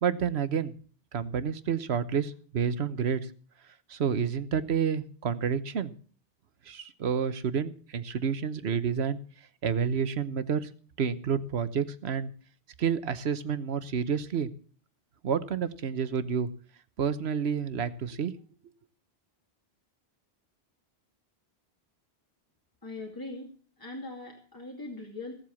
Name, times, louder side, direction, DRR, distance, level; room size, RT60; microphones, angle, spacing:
voice 1, 0.0-0.7 1.1-3.2 3.9-5.9 6.7-9.2 9.6-10.7 11.0-12.3 12.8-14.5 15.2-16.5 17.0-18.3, right 7 dB, 80° right, 13 dB, 1.2 m, -29 dB
voice 2, 22.8-23.5 23.8-25.3, left 2 dB, 20° left, -1 dB, 2.4 m, -40 dB
16.5 x 7.8 x 7.0 m, 0.43 s
omnidirectional pair, 1.1 m